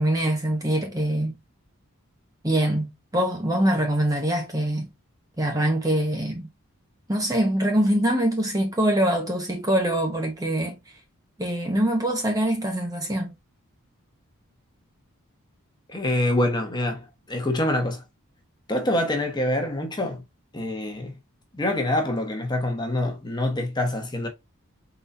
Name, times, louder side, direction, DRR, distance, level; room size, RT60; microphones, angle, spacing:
voice 1, 0.0-1.4 2.4-4.9 5.4-6.5 7.1-10.8 11.4-13.3, right 1 dB, 15° right, 0.8 m, -24 dB
voice 2, 15.9-18.0 18.7-20.2 20.5-21.2 21.5-24.3, left 1 dB, 20° left, 1.1 m, -25 dB
4.7 x 4.0 x 2.6 m
head